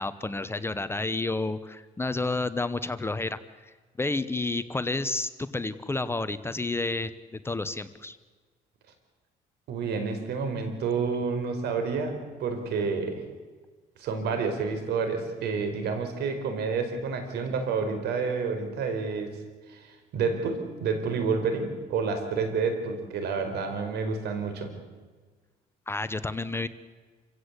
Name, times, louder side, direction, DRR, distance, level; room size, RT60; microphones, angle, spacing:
voice 1, 0.0-3.4 4.0-8.2 25.9-26.7, left 3 dB, 15° left, 12 dB, 1.0 m, -30 dB
voice 2, 9.7-13.2 14.0-19.4 19.7-19.9 20.1-24.7, right 5 dB, 75° right, 7 dB, 4.6 m, -29 dB
27.5 x 16.0 x 8.3 m, 1.4 s
cardioid pair, 110°, 17 cm